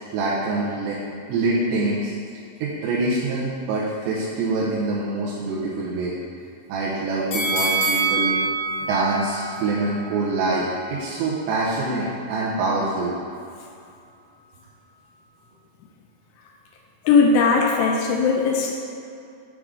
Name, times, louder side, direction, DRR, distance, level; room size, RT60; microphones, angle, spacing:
voice 1, 0.1-1.0 1.3-2.1 2.6-6.1 6.7-8.3 8.9-13.1, right 3 dB, 80° right, -7 dB, 3.0 m, -25 dB
sound 1, 7.3-10.4 10.8-10.9, right 3 dB, 60° left, 2.1 m, -25 dB
voice 2, 17.1-18.8, left 4 dB, 80° left, 1 dB, 2.5 m, -18 dB
9.6 x 3.7 x 4.9 m, 2.5 s
omnidirectional pair, 5.2 m